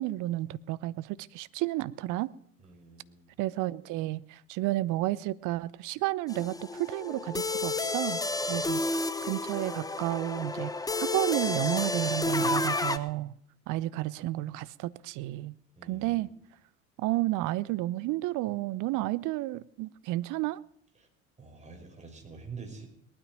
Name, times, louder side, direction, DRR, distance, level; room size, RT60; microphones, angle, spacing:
voice 1, 0.0-2.3 3.4-8.2 8.5-13.3 13.7-15.6 15.9-16.3 17.0-20.6, right 17 dB, 50° right, 0.7 m, -31 dB
voice 2, 2.7-3.3 15.8-16.3 21.4-22.9, right 5 dB, 15° right, 5.3 m, -46 dB
sound 1, 6.3-13.0, left 2 dB, 10° left, 1.0 m, -31 dB
19.0 x 12.0 x 5.2 m
figure-of-eight pair, 65°, 40 cm